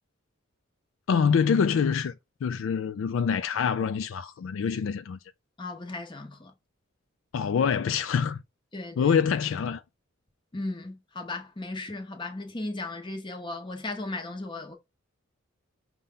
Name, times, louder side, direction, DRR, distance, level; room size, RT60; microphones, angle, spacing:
voice 1, 1.1-2.1 2.4-5.2 7.3-8.4 9.0-9.8, left 6 dB, 65° left, 0.3 m, -25 dB
voice 2, 5.6-6.5 8.7-9.2 10.5-14.8, left 2 dB, 20° left, 0.8 m, -36 dB
5.4 x 2.2 x 3.7 m
head